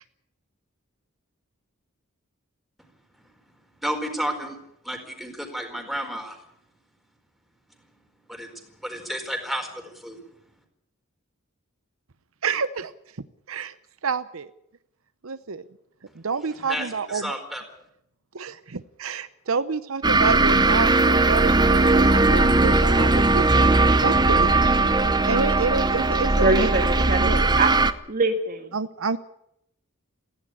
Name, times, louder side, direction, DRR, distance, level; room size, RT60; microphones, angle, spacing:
voice 1, 3.8-4.6 4.8-6.4 8.3-8.5 8.8-10.2 16.5-16.9 17.2-17.6, equal, ahead, 4 dB, 4.5 m, -31 dB
voice 2, 12.4-12.9 13.5-13.7 14.0-14.5 15.2-15.6 16.1-17.3 18.3-24.8 25.3-26.7 27.1-27.4 28.7-29.2, right 5 dB, 70° right, 13 dB, 0.8 m, -29 dB
sound 1, 20.0-27.9, right 2 dB, 20° right, 0.9 m, -19 dB
voice 3, 26.4-27.3 27.6-27.7 28.1-28.7, right 2 dB, 40° right, 5 dB, 1.8 m, -23 dB
18.0 x 16.0 x 9.9 m, 0.76 s
head